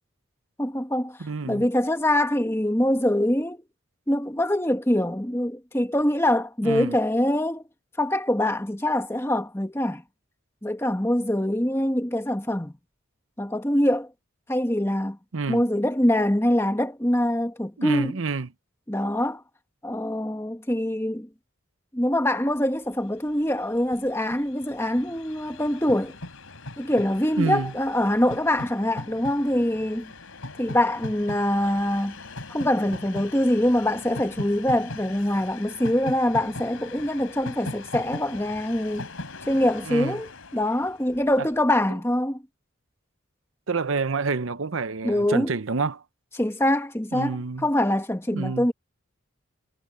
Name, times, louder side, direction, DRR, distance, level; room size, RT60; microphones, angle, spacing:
voice 1, 0.6-1.2 1.5-3.6 4.1-7.6 8.0-10.0 10.6-12.7 13.4-14.1 14.5-15.2 15.5-18.1 18.9-19.4 19.8-21.3 21.9-26.2 26.8-30.1 30.6-32.2 32.5-39.1 39.5-42.4 45.0-45.5 46.4-48.7, left 1 dB, 10° left, 1.3 m, -24 dB
voice 2, 1.2-1.6 6.6-7.0 15.3-15.6 17.8-18.5 27.4-27.7 31.6-31.7 39.9-40.2 43.7-46.0 47.1-47.7 48.3-48.7, right 4 dB, 70° right, 0.8 m, -28 dB
Train, 22.9-23.0 23.2-41.6, left 2 dB, 85° left, 4.1 m, -40 dB
head